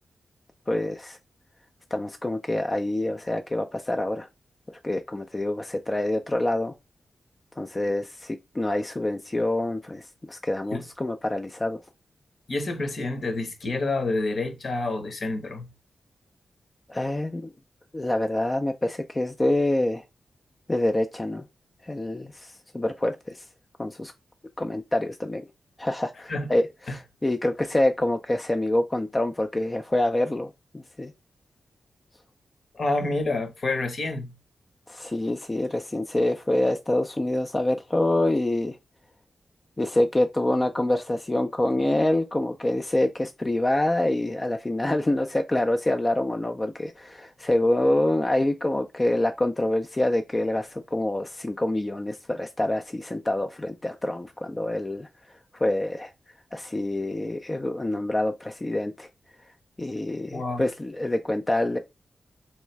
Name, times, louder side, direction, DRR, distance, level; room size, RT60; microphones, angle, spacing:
voice 1, 0.7-1.2 1.9-4.3 4.8-6.7 7.6-11.8 16.9-17.5 17.9-20.0 20.7-21.4 21.8-23.4 23.8-24.1 24.6-25.5 25.8-31.1 34.9-38.8 39.8-55.1 55.5-56.1 56.5-59.1 59.8-61.8, left 1 dB, 20° left, 0.4 m, -26 dB
voice 2, 12.5-15.7 26.3-26.5 26.9-27.0 32.7-34.3 60.3-60.6, left 2 dB, 55° left, 1.0 m, -28 dB
3.6 x 3.1 x 3.2 m
wide cardioid pair, 100°, 0 cm